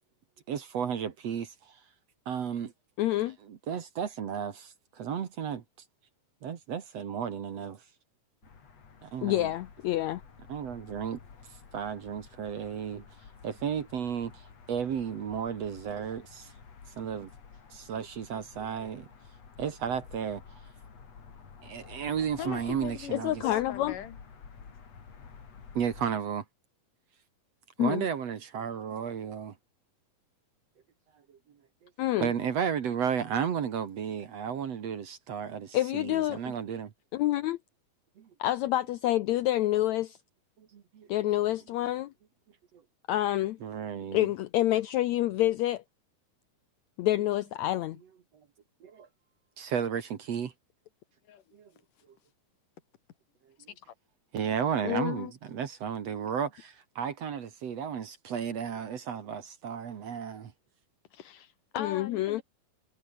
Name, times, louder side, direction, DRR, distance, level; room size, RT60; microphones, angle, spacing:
voice 1, 0.5-1.9 2.3-2.7 3.4-5.6 6.4-7.9 9.0-9.5 10.5-13.1 13.4-16.5 17.0-17.3 17.7-19.1 19.6-20.6 21.6-23.4 25.7-26.5 27.8-29.6 31.1-31.9 32.2-36.9 38.2-38.3 40.6-41.1 42.7-42.8 43.6-44.3 48.3-48.5 48.8-49.1 49.6-50.5 51.5-51.7 52.1-52.2 53.5-53.7 54.3-60.5, right 7 dB, 55° right, 2.5 m, -34 dB
voice 2, 3.0-3.4 9.2-10.2 23.1-23.9 27.8-28.0 32.0-32.3 35.7-36.4 37.1-37.6 38.4-40.2 41.1-42.1 43.1-43.6 44.1-45.8 47.0-48.0 54.8-55.3 61.8-62.4, left 14 dB, 85° left, 1.6 m, -27 dB
sound 1, 8.4-26.1, left 6 dB, 45° left, 4.3 m, -51 dB
voice 3, 22.4-24.2 51.3-51.4 61.1-62.4, left 10 dB, 65° left, 3.2 m, -39 dB
omnidirectional pair, 4.1 m